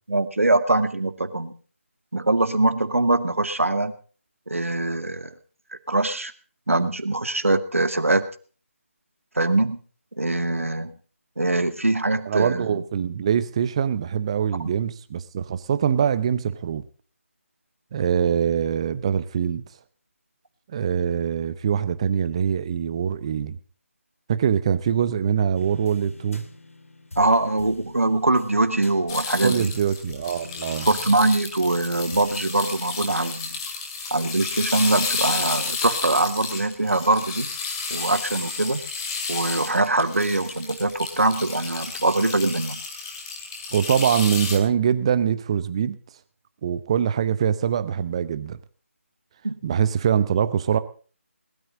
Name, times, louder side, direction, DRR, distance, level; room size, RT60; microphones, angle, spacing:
voice 1, 0.1-1.6 2.1-3.9 4.5-5.3 5.9-6.3 6.7-8.3 9.4-9.8 10.2-10.9 11.4-12.8 27.2-29.7 30.9-33.6 34.1-37.5 37.9-38.8 39.3-42.8 49.4-49.6, right 2 dB, 75° right, 2.1 m, -22 dB
voice 2, 12.3-16.9 17.9-19.6 20.7-23.6 24.3-26.5 29.4-30.9 43.7-46.0 46.6-48.6 49.6-50.8, right 8 dB, 25° right, 0.8 m, -23 dB
sound 1, 25.5-29.7 30.1-32.4, left 2 dB, 75° left, 2.3 m, -45 dB
sound 2, 29.1-44.6, left 5 dB, 15° left, 2.4 m, -32 dB
20.5 x 13.0 x 3.8 m
figure-of-eight pair, 155°, 7 cm